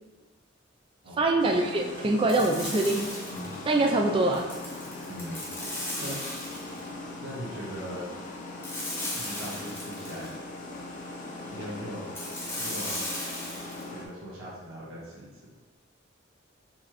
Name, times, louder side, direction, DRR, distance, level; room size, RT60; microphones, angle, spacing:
voice 1, 1.2-3.1 3.7-4.5, right 2 dB, 25° right, 2 dB, 0.3 m, -24 dB
machine sound, 1.4-14.1, left 2 dB, 40° left, 0.5 m, -40 dB
sound 1, 2.3-3.6 4.3-6.9 8.6-10.3 12.1-13.9, left 1 dB, 10° left, 0.9 m, -36 dB
Acoustic guitar / Strum, 3.3-9.2, left 2 dB, 55° right, 1.4 m, -50 dB
voice 2, 5.1-5.4 6.0-6.2 7.2-8.1 9.1-10.3 11.5-12.0 12.6-13.1 13.9-15.3, equal, 80° right, -6 dB, 1.2 m, -39 dB
4.3 x 3.1 x 2.9 m, 1.2 s
head